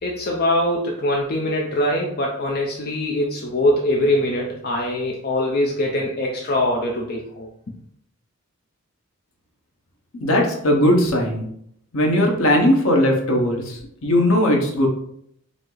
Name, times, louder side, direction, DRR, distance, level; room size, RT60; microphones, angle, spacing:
voice 1, 0.0-7.5, left 1 dB, 45° left, -1 dB, 0.5 m, -22 dB
voice 2, 10.2-11.5 11.9-14.9, left 1 dB, 70° left, 1 dB, 0.9 m, -18 dB
5.1 x 2.0 x 3.9 m, 0.69 s
head